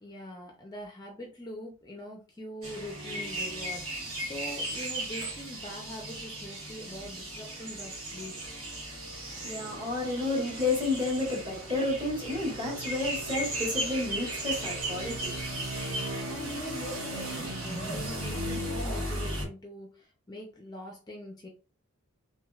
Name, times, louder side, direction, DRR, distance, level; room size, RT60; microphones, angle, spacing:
voice 1, 0.0-8.4 16.3-21.5, equal, 20° left, 0.5 m, -43 dB
sound 1, 2.6-19.5, right 1 dB, 65° right, 1.6 m, -36 dB
voice 2, 9.1-15.5, left 2 dB, 20° right, 1.4 m, -31 dB
3.1 x 3.1 x 2.4 m
head